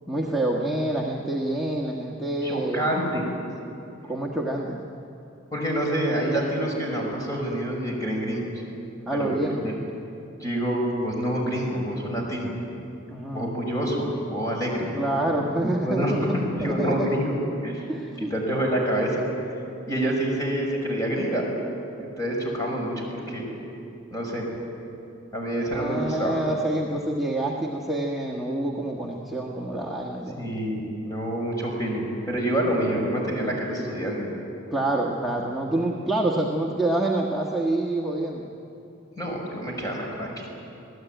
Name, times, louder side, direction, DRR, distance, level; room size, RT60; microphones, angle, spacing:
voice 1, 0.1-2.9 4.1-4.8 9.1-9.7 13.1-13.5 14.9-17.1 17.9-18.3 25.7-30.6 34.7-38.5, right 1 dB, ahead, -3 dB, 1.4 m, -27 dB
voice 2, 2.4-3.2 5.5-8.5 9.1-9.7 10.4-12.5 13.3-14.9 15.8-16.1 16.6-17.4 17.6-17.9 18.2-19.2 19.9-21.4 22.0-23.5 24.1-24.5 25.3-26.4 30.4-34.3 39.2-40.5, right 1 dB, 15° left, -1 dB, 5.7 m, -27 dB
27.0 x 17.0 x 9.1 m, 2.8 s
head